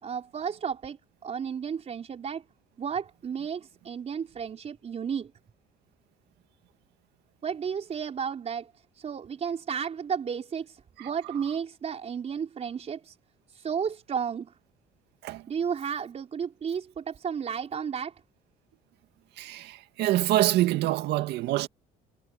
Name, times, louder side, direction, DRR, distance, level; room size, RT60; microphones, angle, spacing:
voice 1, 0.0-2.4 2.8-5.3 7.4-13.2 13.5-14.5 15.5-18.2, right 7 dB, 40° right, 4.1 m, -33 dB
voice 2, 19.4-21.7, right 15 dB, 80° right, 1.9 m, -26 dB
cardioid pair, 110°, 17 cm